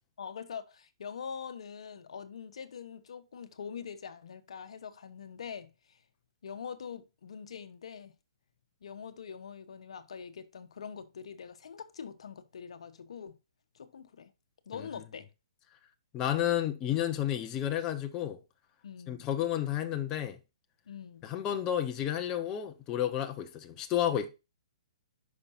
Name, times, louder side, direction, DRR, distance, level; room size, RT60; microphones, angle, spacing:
voice 1, 0.2-6.0 6.4-8.2 8.8-13.4 13.7-14.3 14.7-15.3 18.8-19.3 20.9-21.3, left 7 dB, 70° left, 1.0 m, -44 dB
voice 2, 16.1-18.4 19.1-20.4 21.2-24.3, left 11 dB, 20° left, 0.9 m, -31 dB
9.8 x 5.9 x 2.6 m
hypercardioid pair, 150°, 3 cm